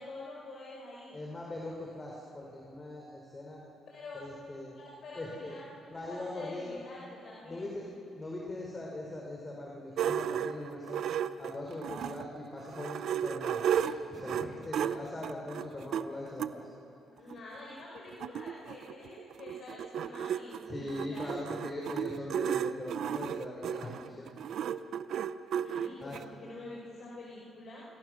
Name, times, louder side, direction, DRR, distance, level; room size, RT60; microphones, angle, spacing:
voice 1, 0.0-1.2 3.9-4.2 4.8-7.7 17.2-21.2 25.6-27.9, left 2 dB, 60° left, -4 dB, 5.5 m, -47 dB
voice 2, 1.1-3.6 4.1-4.8 5.1-5.6 5.9-6.8 7.5-7.8 8.1-11.0 11.4-16.6 17.1-17.3 20.7-24.3 26.0-26.2, left 1 dB, 25° left, -2 dB, 4.6 m, -41 dB
sound 1, 10.0-12.3 12.7-16.5 17.3-17.4 17.7-17.8 18.0-26.2, right 9 dB, 70° right, 0.7 m, -34 dB
29.5 x 27.5 x 6.6 m, 2.9 s
cardioid pair, 90°, 0 cm